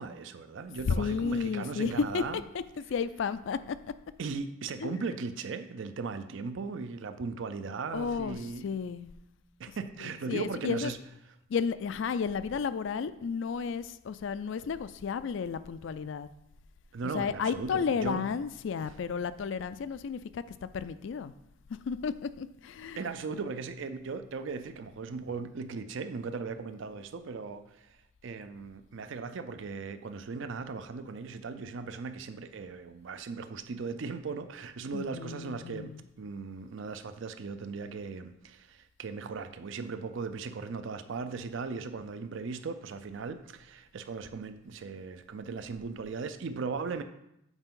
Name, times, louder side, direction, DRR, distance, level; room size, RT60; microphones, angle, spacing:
voice 1, 0.0-2.4 4.2-8.7 9.6-11.0 16.9-18.2 18.8-18.9 23.0-28.0 28.2-47.0, right 4 dB, 60° right, 10 dB, 0.4 m, -38 dB
voice 2, 0.9-3.9 4.8-5.0 7.9-9.1 10.0-10.9 11.5-16.3 17.0-20.4 20.7-21.3 21.9-23.1 34.9-36.1, left 6 dB, 60° left, 14 dB, 0.3 m, -33 dB
8.1 x 4.4 x 3.7 m, 0.81 s
head